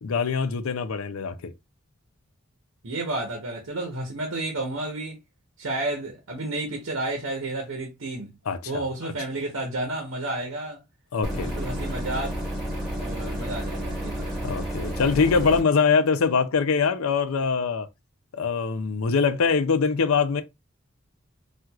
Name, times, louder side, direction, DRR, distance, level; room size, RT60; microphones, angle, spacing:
voice 1, 0.0-1.5 8.5-9.1 11.1-11.5 14.4-17.9 18.3-20.4, left 5 dB, 85° left, 0.5 m, -23 dB
voice 2, 2.8-5.2 5.6-8.3 8.7-10.8 11.3-12.4 13.0-14.4, right 2 dB, 75° right, 1.0 m, -31 dB
sound 1, 11.2-15.6, equal, ahead, 1.4 m, -31 dB
4.4 x 2.4 x 2.3 m
head